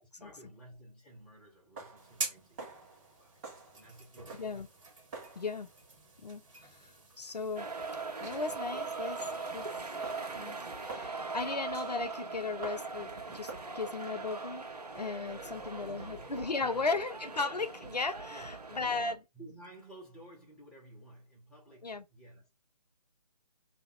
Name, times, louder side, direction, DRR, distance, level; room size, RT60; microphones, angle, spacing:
voice 1, 0.0-3.4 3.7-4.5 5.3-5.4 15.4-16.3 16.6-16.8 17.5-17.6 18.3-18.6 18.8-22.5, right 1 dB, 5° left, 1.6 m, -54 dB
sound 1, 1.1-14.9, right 3 dB, 20° right, 1.5 m, -51 dB
sound 2, 2.0-10.9, right 3 dB, 50° right, 1.6 m, -47 dB
voice 2, 4.3-4.7 5.4-5.7 6.2-6.4 6.8-6.9 7.2-7.7 8.2-9.2 9.5-9.7 10.4-10.6 10.8-14.7 15.0-18.4 18.7-19.2 21.8-22.0, left 3 dB, 75° left, 0.8 m, -36 dB
sound 3, 7.6-19.1, right 4 dB, 75° right, 1.0 m, -41 dB
3.6 x 2.8 x 4.5 m
figure-of-eight pair, 145°, 21 cm